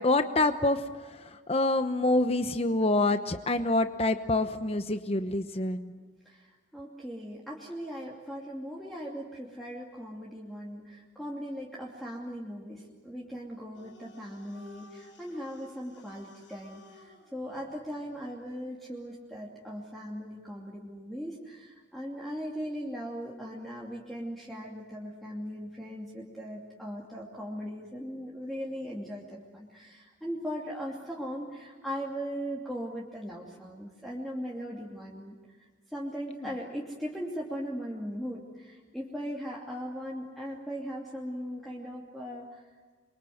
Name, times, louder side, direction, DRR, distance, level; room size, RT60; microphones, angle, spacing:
voice 1, 0.0-5.9, left 2 dB, 35° left, 9 dB, 0.9 m, -27 dB
voice 2, 6.2-42.6, equal, ahead, -4 dB, 2.8 m, -39 dB
sound 1, 13.7-18.4, left 1 dB, 85° left, 7.3 m, -56 dB
28.5 x 23.5 x 7.9 m, 1.5 s
head